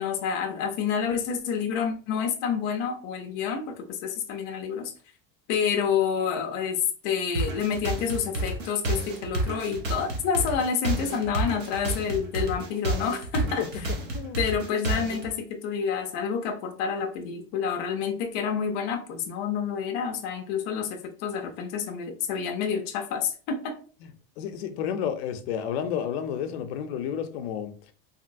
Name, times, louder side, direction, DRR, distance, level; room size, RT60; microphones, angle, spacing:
voice 1, 0.0-4.9 5.5-13.6 14.4-23.7, left 7 dB, 35° left, 0.4 m, -28 dB
sound 1, 7.3-15.3, right 2 dB, 35° right, 0.5 m, -30 dB
voice 2, 13.6-14.4 24.4-27.7, left 8 dB, 90° left, 0.6 m, -31 dB
3.0 x 2.7 x 2.5 m
cardioid pair, 180°, 31 cm